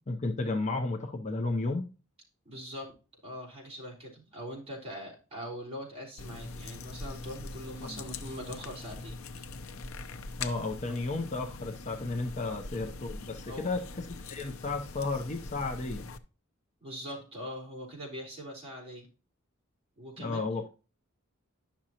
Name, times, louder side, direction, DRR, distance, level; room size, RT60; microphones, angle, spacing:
voice 1, 0.1-1.9 7.8-8.0 10.4-16.1 20.2-20.7, left 3 dB, 35° left, 0.7 m, -33 dB
voice 2, 2.5-2.9 3.2-9.5 10.9-11.0 12.4-12.6 13.5-13.7 16.8-19.1 20.0-20.5, equal, 30° right, 3.8 m, -42 dB
sound 1, 6.2-16.2, left 3 dB, 70° left, 0.6 m, -42 dB
10.0 x 6.2 x 2.9 m
head